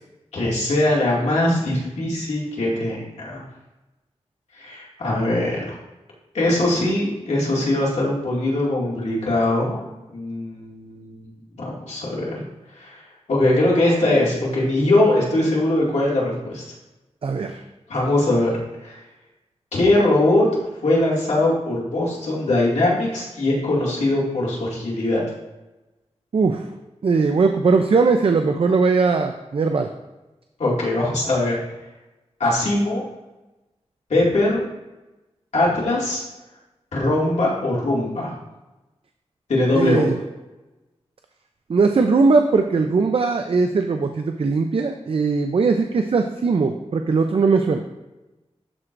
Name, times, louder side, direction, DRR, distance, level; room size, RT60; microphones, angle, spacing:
voice 1, 0.3-3.4 4.6-5.8 6.3-9.8 10.1-11.3 11.6-12.4 12.7-13.0 13.3-16.6 17.9-18.6 18.8-19.0 19.7-20.5 20.8-25.2 30.6-31.5 32.4-33.0 34.1-34.6 35.5-36.2 36.9-38.3 39.5-40.1, left 1 dB, 90° left, -6 dB, 2.3 m, -21 dB
voice 2, 17.2-17.6 26.3-26.6 27.0-29.9 39.7-40.2 41.7-47.8, right 4 dB, 55° right, 5 dB, 0.5 m, -19 dB
12.5 x 4.5 x 2.6 m, 1.1 s
wide cardioid pair, 75°, 11 cm